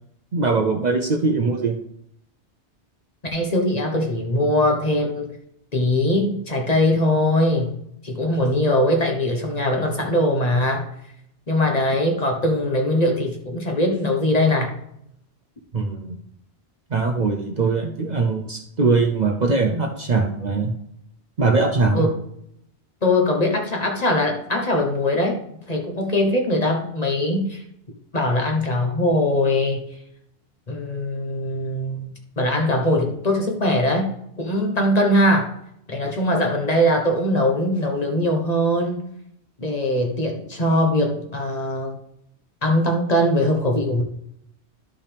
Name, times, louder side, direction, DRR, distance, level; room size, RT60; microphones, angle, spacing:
voice 1, 0.3-1.7 15.7-16.2 16.9-20.7 21.4-22.0, right 3 dB, 45° right, 3 dB, 0.7 m, -21 dB
voice 2, 3.3-5.3 5.7-7.8 8.0-10.9 11.5-14.7 21.9-22.1 23.0-25.4 25.7-27.6 28.1-29.8 30.7-34.1 34.4-35.5 35.9-39.0 39.6-42.0 42.6-44.0, left 1 dB, 40° left, 2 dB, 1.2 m, -21 dB
12.0 x 5.4 x 3.5 m, 0.75 s
omnidirectional pair, 1.1 m